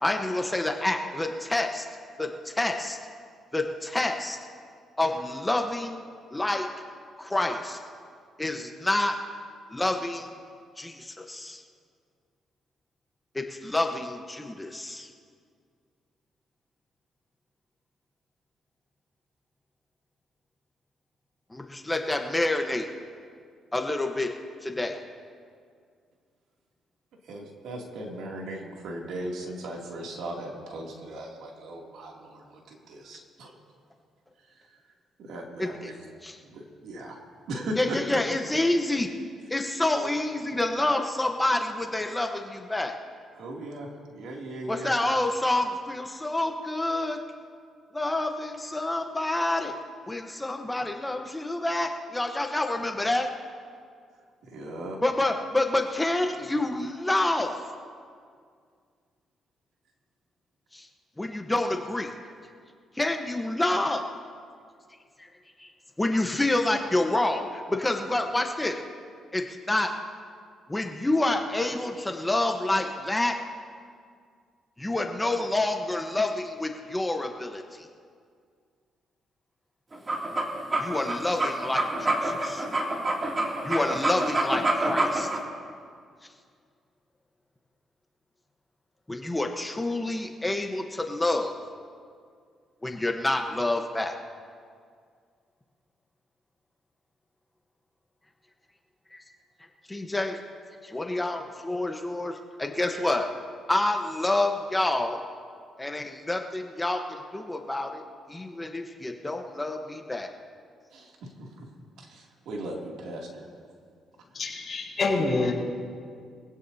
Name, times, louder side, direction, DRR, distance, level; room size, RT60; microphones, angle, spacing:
voice 1, 0.0-1.9 2.2-3.0 3.5-4.4 5.0-6.0 6.3-6.7 7.2-7.8 8.4-9.1 9.7-10.3 10.8-11.6 13.3-15.1 21.5-22.9 23.7-24.3 24.6-24.9 35.6-35.7 36.2-36.4 37.8-39.1 39.5-42.9 44.7-47.2 47.9-49.7 50.0-53.3 55.0-57.5 60.7-60.9 61.2-62.1 62.9-64.0 65.2-65.3 65.6-65.7 66.0-68.8 69.3-69.9 70.7-73.3 74.8-77.6 80.8-82.7 83.6-85.3 89.1-91.5 92.8-94.1 99.1-99.2 99.9-100.4 100.8-103.3 103.7-105.2 105.8-108.0 108.3-110.3, left 2 dB, 10° left, 3 dB, 1.1 m, -28 dB
voice 2, 27.2-33.6 34.4-34.8 35.2-36.0 36.4-37.2 37.5-38.2 43.3-44.9 54.5-55.0 110.9-111.7 112.0-113.5, right 1 dB, 80° right, -1 dB, 2.8 m, -38 dB
sound 1, 79.9-85.4, right 2 dB, 30° right, 2.7 m, -27 dB
voice 3, 114.3-115.5, left 3 dB, 40° left, -6 dB, 4.6 m, -26 dB
23.5 x 16.5 x 2.8 m, 2.1 s
cardioid pair, 90°, 0 cm